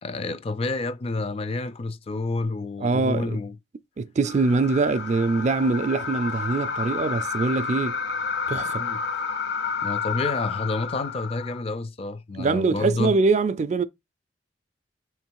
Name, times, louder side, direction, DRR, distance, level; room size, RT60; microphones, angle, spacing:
voice 1, 0.0-3.6 8.7-9.0 9.8-13.1, left 3 dB, 35° left, 0.4 m, -29 dB
voice 2, 2.8-3.4 4.0-8.0 8.5-8.8 12.4-13.8, right 3 dB, 40° right, 0.4 m, -23 dB
sound 1, 4.2-11.6, left 5 dB, 65° left, 0.7 m, -30 dB
6.6 x 3.1 x 4.6 m
head